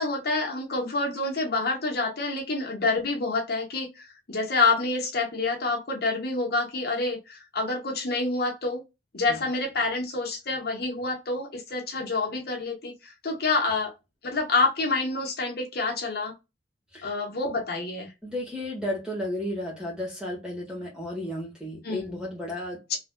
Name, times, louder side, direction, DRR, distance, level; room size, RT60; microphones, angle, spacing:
voice 1, 0.0-8.8 9.1-13.9 14.2-16.3 17.0-18.1 21.8-22.2 22.9-23.0, left 3 dB, 55° left, 1.1 m, -27 dB
voice 2, 18.2-23.0, left 1 dB, 5° right, 1.5 m, -33 dB
4.0 x 2.7 x 2.2 m
head